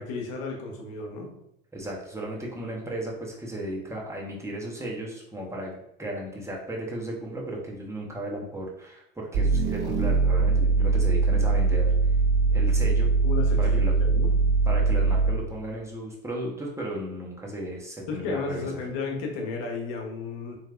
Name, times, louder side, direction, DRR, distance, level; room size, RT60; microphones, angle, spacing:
voice 1, 0.0-1.3 13.2-14.3 18.1-20.6, left 4 dB, 65° left, 2 dB, 1.1 m, -33 dB
voice 2, 1.7-11.9 12.5-13.1 13.6-13.9 14.6-18.8, right 1 dB, 10° right, -3 dB, 1.1 m, -35 dB
sound 1, 9.3-15.5, right 4 dB, 50° right, 1.4 m, -22 dB
4.5 x 3.1 x 2.5 m, 0.79 s
hypercardioid pair, 85°, 30 cm